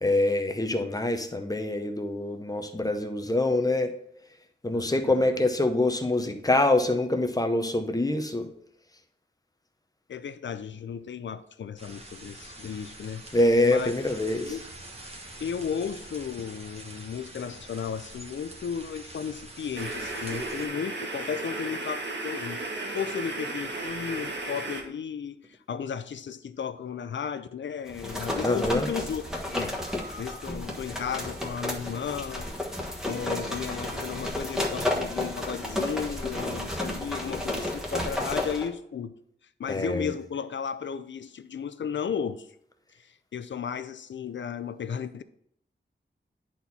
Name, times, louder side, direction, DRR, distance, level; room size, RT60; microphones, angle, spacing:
voice 1, 0.0-3.9 4.6-8.5 13.3-14.5 28.4-28.9 39.7-40.1, left 2 dB, 20° left, 0.7 m, -25 dB
voice 2, 4.7-5.2 10.1-13.2 13.6-13.9 14.4-14.6 15.4-22.6 22.9-29.8 30.1-32.5 33.0-39.2 39.6-42.5 43.0-45.2, left 7 dB, 70° left, 0.5 m, -34 dB
sound 1, 11.8-20.7, right 1 dB, 30° right, 1.3 m, -45 dB
sound 2, 19.7-24.8, right 2 dB, 65° right, 1.5 m, -34 dB
sound 3, 27.9-38.7, left 1 dB, 5° right, 1.3 m, -32 dB
10.0 x 4.3 x 4.2 m
wide cardioid pair, 115°, 20 cm